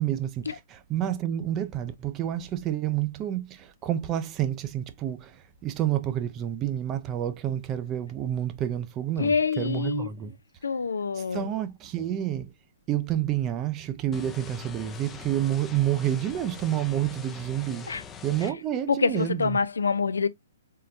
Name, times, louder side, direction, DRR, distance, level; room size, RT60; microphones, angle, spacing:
voice 1, 0.0-5.4 5.6-10.3 11.2-12.5 12.9-17.9 18.2-19.6, right 11 dB, 25° right, 0.6 m, -29 dB
voice 2, 9.2-10.1 10.6-11.5 17.9-18.0 18.9-20.3, left 5 dB, 75° left, 0.4 m, -26 dB
sound 1, 14.1-18.5, left 7 dB, 15° left, 0.6 m, -43 dB
4.3 x 3.8 x 2.5 m
figure-of-eight pair, 125°, 0 cm